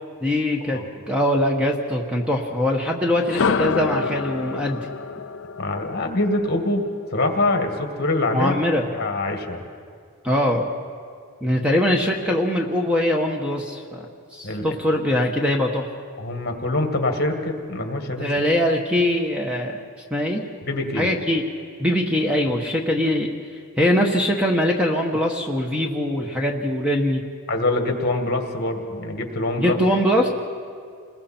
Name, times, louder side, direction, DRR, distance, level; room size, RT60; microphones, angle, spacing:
voice 1, 0.2-0.8 1.1-4.9 8.3-8.9 10.2-10.6 11.4-14.1 14.3-15.9 18.2-19.8 20.1-20.5 21.0-21.4 21.8-23.3 23.8-27.3 29.6-30.3, left 1 dB, 5° right, 1 dB, 1.1 m, -22 dB
sound 1, 3.2-7.2, left 5 dB, 65° left, 0.5 m, -27 dB
voice 2, 5.6-8.6 8.9-9.6 14.4-14.8 16.2-18.3 20.6-21.1 27.5-29.8, left 2 dB, 45° left, 4 dB, 2.0 m, -24 dB
28.5 x 21.0 x 4.4 m, 2.1 s
head